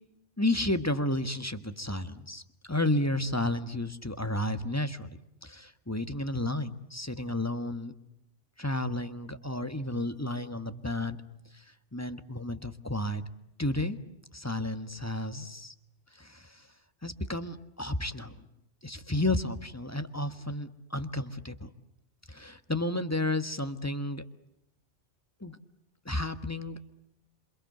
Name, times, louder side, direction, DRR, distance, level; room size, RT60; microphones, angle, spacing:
voice 1, 0.4-2.4 2.7-5.1 5.4-7.9 8.6-11.2 11.9-13.2 13.6-14.0 14.3-15.7 17.0-18.3 18.8-21.5 22.3-24.2 25.4-25.6 26.0-26.8, left 1 dB, 15° left, 9 dB, 1.6 m, -32 dB
28.0 x 27.0 x 7.9 m, 0.81 s
omnidirectional pair, 1.2 m